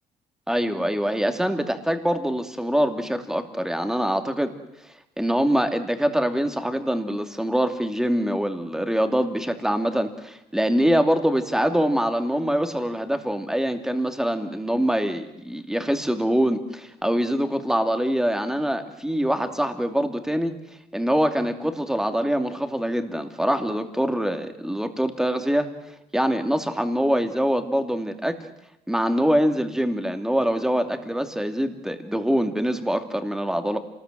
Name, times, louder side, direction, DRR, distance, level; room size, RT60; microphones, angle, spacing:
voice 1, 0.5-4.5 5.2-20.5 20.9-25.7 26.1-28.4 28.9-33.8, equal, 5° right, 6 dB, 2.6 m, -24 dB
26.5 x 20.0 x 7.8 m, 0.83 s
cardioid pair, 95°, 16 cm